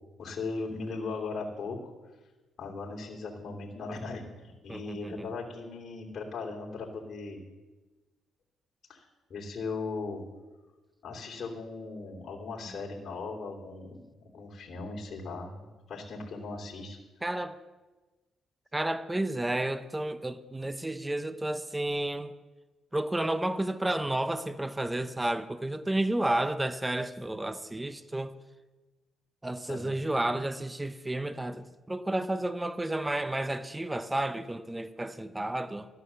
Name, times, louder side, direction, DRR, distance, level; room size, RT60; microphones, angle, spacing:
voice 1, 0.2-1.8 2.6-7.4 8.9-10.2 11.0-14.0 14.2-17.0 29.7-30.0, left 3 dB, 55° left, 3.0 m, -38 dB
voice 2, 4.7-5.3 17.2-17.6 18.7-22.3 22.9-28.3 29.4-35.9, right 1 dB, 10° right, 0.7 m, -31 dB
13.0 x 9.4 x 6.9 m
cardioid pair, 90°, 0 cm